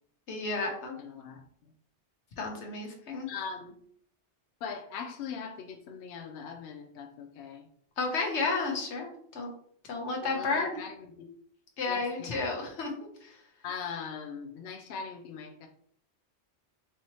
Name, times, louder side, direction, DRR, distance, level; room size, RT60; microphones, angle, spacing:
voice 1, 0.3-1.0 2.4-3.3 8.0-9.5 9.9-10.8 11.8-13.4, left 3 dB, 90° left, 1 dB, 1.2 m, -32 dB
voice 2, 1.0-1.7 3.3-3.8 4.6-7.7 10.2-11.3 11.9-12.3 13.6-15.7, left 6 dB, 70° left, 2 dB, 0.8 m, -41 dB
4.7 x 2.8 x 3.0 m, 0.64 s
omnidirectional pair, 1.1 m